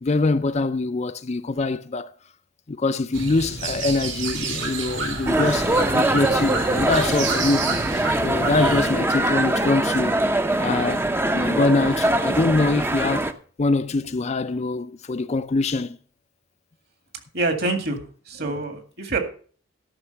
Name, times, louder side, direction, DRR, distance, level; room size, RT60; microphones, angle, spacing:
voice 1, 0.0-2.1 2.7-7.8 8.2-10.2 10.6-13.3 13.6-16.0, left 3 dB, 35° left, 0.5 m, -24 dB
sound 1, 3.1-8.9, right 4 dB, 75° right, 3.3 m, -29 dB
sound 2, 5.3-13.3, right 1 dB, 10° right, 0.6 m, -23 dB
voice 2, 17.3-18.0 18.3-19.2, right 2 dB, 55° right, 2.1 m, -25 dB
13.0 x 6.1 x 5.6 m
head